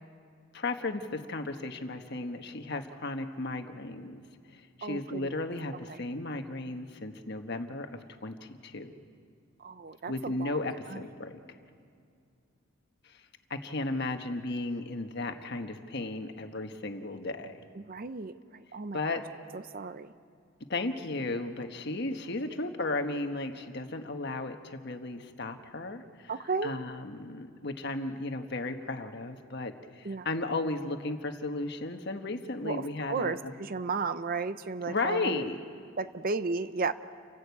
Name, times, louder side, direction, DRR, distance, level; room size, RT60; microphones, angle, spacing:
voice 1, 0.5-4.2 4.5-8.9 10.1-11.4 13.0-13.2 13.5-17.7 18.9-19.2 20.7-26.3 26.6-33.5 34.9-35.6, left 2 dB, 50° left, 6 dB, 1.3 m, -35 dB
voice 2, 4.8-5.5 5.9-6.0 9.6-10.6 10.9-11.0 17.8-19.2 19.5-20.1 26.3-26.7 30.0-30.3 32.6-35.4 36.0-36.9, right 4 dB, 40° right, 12 dB, 0.6 m, -34 dB
30.0 x 11.5 x 8.3 m, 2.4 s
head